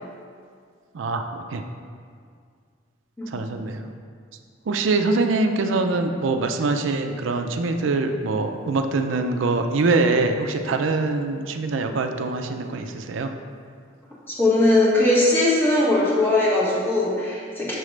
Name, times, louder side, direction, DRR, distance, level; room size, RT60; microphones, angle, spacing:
voice 1, 0.9-1.6 3.3-3.9 4.7-13.3, right 3 dB, 85° right, 6 dB, 0.5 m, -24 dB
voice 2, 14.3-17.8, left 2 dB, 10° left, -6 dB, 1.2 m, -20 dB
6.1 x 3.2 x 5.0 m, 2.1 s
head